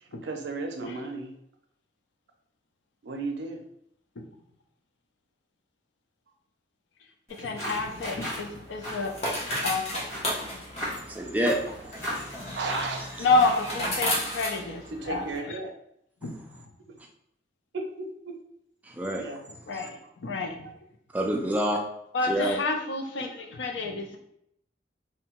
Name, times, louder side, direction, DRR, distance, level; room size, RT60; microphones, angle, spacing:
voice 1, 0.0-1.3 3.0-3.6 12.5-13.0 14.9-15.7 17.7-18.4 19.2-19.4 20.6-20.7, right 3 dB, 75° right, 3 dB, 0.5 m, -34 dB
sound 1, 7.3-13.8, equal, 15° left, 1.3 m, -38 dB
voice 2, 7.4-9.1 9.6-10.1 13.2-15.6 16.2-16.4 19.7-20.6 22.1-24.2, left 3 dB, 80° left, 3 dB, 0.5 m, -29 dB
sound 2, 7.7-15.4, equal, 35° left, 0.7 m, -34 dB
voice 3, 11.0-11.6 16.2-16.3 18.9-19.2 19.7-19.9 21.1-21.8 22.3-22.6, equal, 10° right, 1 dB, 0.3 m, -27 dB
2.7 x 2.1 x 2.9 m, 0.75 s
head